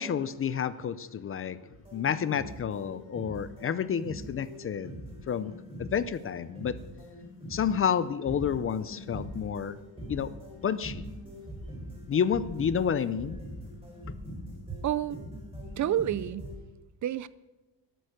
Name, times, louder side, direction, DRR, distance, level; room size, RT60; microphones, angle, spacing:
voice 1, 0.0-1.6 1.9-5.0 5.3-5.5 5.8-6.8 7.5-9.8 10.1-10.3 10.6-11.0 12.1-13.4, left 7 dB, 30° left, 15 dB, 0.5 m, -30 dB
sound 1, 1.7-16.5, equal, 15° right, 4.5 m, -42 dB
voice 2, 14.8-15.2 15.8-16.4 17.0-17.3, right 11 dB, 45° right, 17 dB, 0.4 m, -28 dB
12.5 x 12.5 x 6.5 m, 1.1 s
cardioid pair, 160°, 44 cm